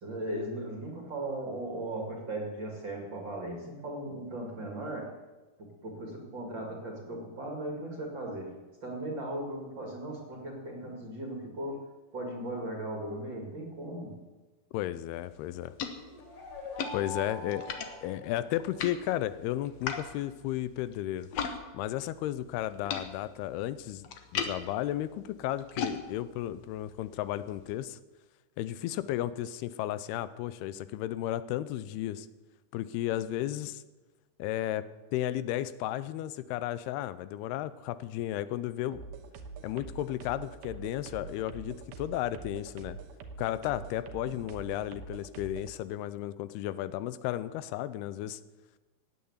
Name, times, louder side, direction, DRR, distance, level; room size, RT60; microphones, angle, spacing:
voice 1, 0.0-5.1 5.6-11.8 12.1-14.2, right 1 dB, 35° right, 0 dB, 2.5 m, -37 dB
voice 2, 14.7-15.7 16.9-17.8 18.0-21.3 21.7-28.0 28.6-32.3 32.7-33.8 34.4-34.8 35.1-39.0 39.6-43.0 43.4-48.4, left 13 dB, 85° left, 14 dB, 2.6 m, -34 dB
sound 1, 15.1-21.6 21.9-27.7, left 6 dB, 65° left, 1.7 m, -40 dB
sound 2, 16.0-18.9, left 2 dB, 35° left, 4.5 m, -43 dB
sound 3, 38.9-45.7, right 5 dB, 80° right, 2.8 m, -45 dB
15.0 x 9.5 x 8.0 m, 1.2 s
omnidirectional pair, 4.5 m